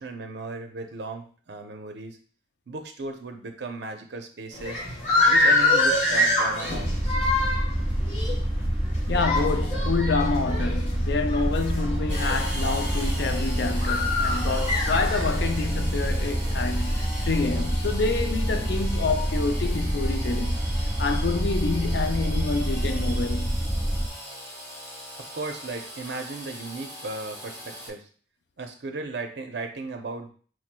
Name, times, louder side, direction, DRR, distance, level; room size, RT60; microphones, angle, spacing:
voice 1, 0.0-2.2 2.7-4.8 5.3-7.2 25.2-28.1 28.6-30.3, right 3 dB, 65° right, 0.6 m, -36 dB
sound 1, 4.5-16.7, left 2 dB, 35° left, 1.3 m, -26 dB
sound 2, 6.8-24.1, right 1 dB, 5° right, 0.3 m, -27 dB
voice 2, 9.1-20.6 21.0-23.6, left 4 dB, 65° left, 0.4 m, -28 dB
Engine / Sawing, 12.1-27.9, equal, 15° left, 1.5 m, -39 dB
4.7 x 3.0 x 2.2 m
head